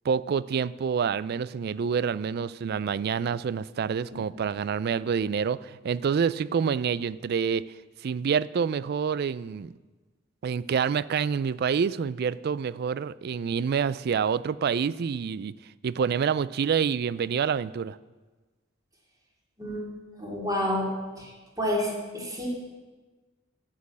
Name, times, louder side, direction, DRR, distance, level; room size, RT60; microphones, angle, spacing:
voice 1, 0.0-7.6 8.0-9.7 10.4-15.5 15.8-18.0, right 6 dB, 50° right, 18 dB, 0.3 m, -27 dB
voice 2, 19.6-20.9 21.2-21.3 21.6-22.5, left 1 dB, 20° right, -2 dB, 2.7 m, -29 dB
10.0 x 7.5 x 8.4 m, 1.3 s
head